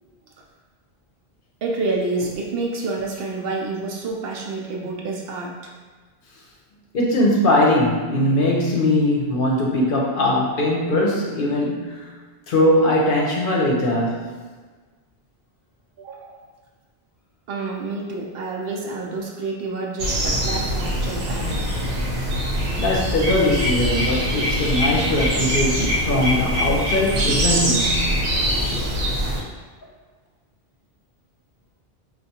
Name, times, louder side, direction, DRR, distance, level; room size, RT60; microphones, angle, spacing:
voice 1, 1.6-5.7 16.0-16.5 17.5-21.6, right 3 dB, 70° right, -1 dB, 0.8 m, -28 dB
voice 2, 6.9-12.1 12.5-14.2 22.8-28.0 28.4-28.9, left 1 dB, 60° left, -2 dB, 0.8 m, -20 dB
sound 1, 20.0-29.4, equal, 85° right, 1.1 m, -23 dB
4.5 x 2.4 x 2.7 m, 1.4 s
omnidirectional pair, 1.1 m